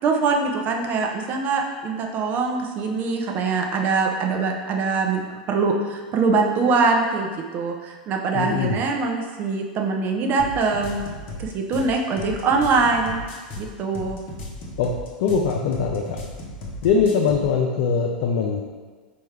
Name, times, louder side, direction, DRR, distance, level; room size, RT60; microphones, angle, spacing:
voice 1, 0.0-5.2 5.5-11.0 11.4-13.2 13.6-14.2, right 4 dB, 40° right, 2 dB, 0.5 m, -23 dB
voice 2, 8.3-8.8 14.8-14.9 15.2-16.0 16.8-18.6, left 5 dB, 60° left, -1 dB, 0.4 m, -21 dB
sound 1, 10.4-17.5, left 1 dB, 45° left, 0.8 m, -35 dB
4.3 x 2.3 x 3.3 m, 1.5 s
hypercardioid pair, 100°, 5 cm